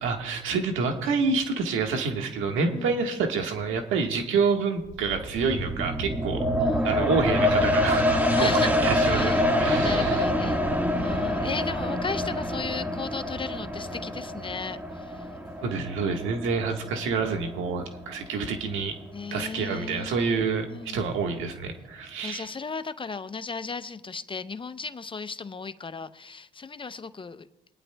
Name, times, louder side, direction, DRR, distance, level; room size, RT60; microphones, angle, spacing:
voice 1, 0.0-6.5 6.8-10.2 15.6-18.9 19.3-22.5, right 5 dB, 90° right, 1.5 m, -28 dB
sound 1, 4.8-18.1 18.6-18.7, left 1 dB, 10° right, 1.5 m, -26 dB
voice 2, 6.6-7.0 8.4-8.7 9.0-9.5 9.8-10.6 11.0-15.3 19.1-20.2 20.7-21.1 22.2-27.5, left 4 dB, 25° left, 0.5 m, -35 dB
25.5 x 9.7 x 2.2 m
cardioid pair, 90°, 20 cm